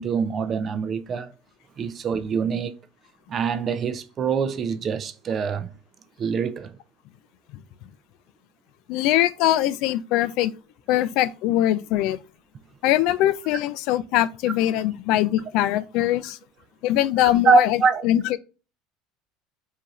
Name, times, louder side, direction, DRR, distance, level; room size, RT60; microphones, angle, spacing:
voice 1, 0.0-1.3 1.8-2.7 3.3-5.7 6.2-6.7 17.5-18.1, right 5 dB, 30° right, 0.4 m, -24 dB
voice 2, 8.9-10.5 10.9-12.2 12.8-16.4 16.8-18.4, left 13 dB, 60° left, 0.3 m, -22 dB
4.7 x 2.6 x 3.0 m
cardioid pair, 150°, 0 cm